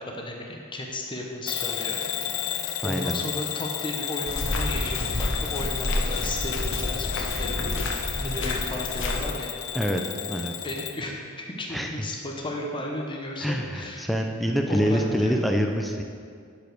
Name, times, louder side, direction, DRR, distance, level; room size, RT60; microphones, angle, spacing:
voice 1, 0.0-2.0 2.8-7.7 8.2-9.5 10.6-14.1 14.7-15.4, left 1 dB, 20° left, 0 dB, 0.8 m, -34 dB
Bell / Alarm, 1.5-11.0, left 10 dB, 80° left, 0.5 m, -32 dB
voice 2, 2.8-3.2 9.7-10.0 10.3-10.5 11.7-12.1 13.4-16.0, equal, ahead, 3 dB, 0.4 m, -26 dB
sound 1, 4.3-9.2, left 1 dB, 60° left, 1.0 m, -29 dB
11.5 x 5.1 x 4.6 m, 2.2 s
head